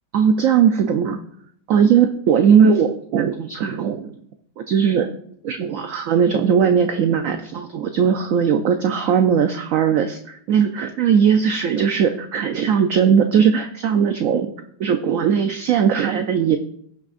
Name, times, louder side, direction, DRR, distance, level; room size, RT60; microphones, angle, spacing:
voice 1, 0.1-1.2 1.7-4.1 4.6-5.1 5.4-14.5 14.8-16.6, right 7 dB, 70° right, 6 dB, 0.7 m, -18 dB
17.0 x 6.1 x 2.5 m, 0.69 s
omnidirectional pair, 1.9 m